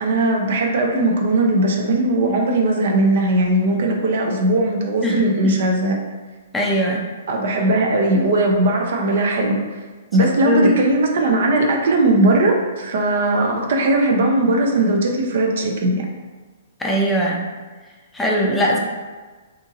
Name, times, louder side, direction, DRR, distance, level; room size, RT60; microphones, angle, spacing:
voice 1, 0.0-6.0 7.3-9.6 10.1-16.1, right 2 dB, 60° right, 1 dB, 0.5 m, -18 dB
voice 2, 5.0-5.5 6.5-7.0 10.2-10.7 16.8-17.4 18.1-18.8, equal, 10° left, -3 dB, 0.4 m, -20 dB
2.8 x 2.6 x 2.5 m, 1.3 s
hypercardioid pair, 120°, 0 cm